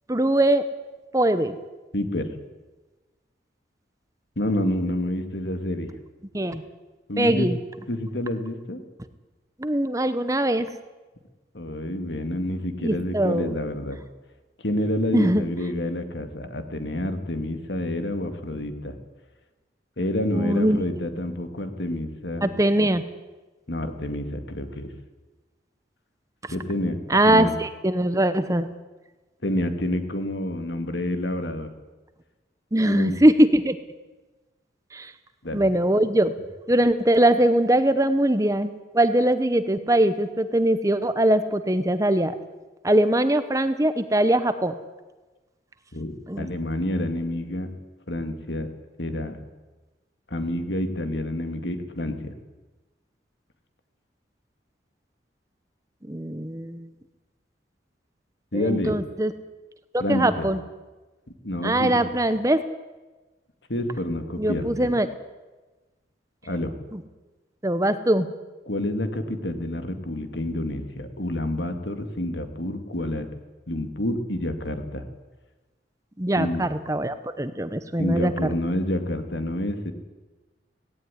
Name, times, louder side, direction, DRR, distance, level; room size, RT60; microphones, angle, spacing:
voice 1, 0.1-0.6 1.1-1.6 6.3-6.6 7.2-7.6 9.6-10.7 12.8-13.5 15.1-15.4 20.3-20.8 22.4-23.0 27.1-28.7 32.7-33.8 34.9-35.1 35.5-36.3 36.7-42.3 42.8-44.7 46.3-46.5 56.1-56.9 58.5-59.3 60.1-60.6 61.6-62.6 64.4-65.1 66.9-67.0 67.6-68.3 76.2-78.5, right 1 dB, 15° right, 11 dB, 1.0 m, -21 dB
voice 2, 1.9-2.3 4.4-5.9 7.1-7.5 7.9-8.8 11.5-14.0 14.6-19.0 20.0-22.5 23.7-24.9 26.5-27.0 27.2-27.6 29.4-31.7 32.8-33.2 35.4-35.7 45.9-47.7 48.1-48.7 49.0-49.4 50.3-52.3 58.5-59.0 60.0-60.5 61.4-62.1 63.7-64.9 66.5-66.7 68.6-73.3 73.7-75.0 76.4-76.7 78.0-79.9, left 1 dB, 70° left, 7 dB, 2.4 m, -28 dB
18.0 x 17.0 x 9.9 m, 1.2 s
head